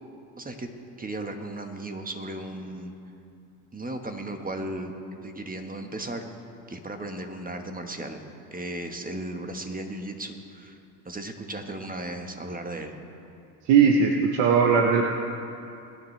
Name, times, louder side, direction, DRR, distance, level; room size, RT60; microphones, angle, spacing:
voice 1, 0.4-0.7 1.0-2.9 3.7-4.9 5.2-6.3 6.7-8.2 8.5-10.8 11.0-13.0, right 1 dB, 20° right, 5 dB, 1.5 m, -35 dB
voice 2, 13.7-15.0, right 6 dB, 65° right, 2 dB, 1.1 m, -19 dB
21.5 x 9.5 x 3.4 m, 2.6 s
hypercardioid pair, 70°, 46 cm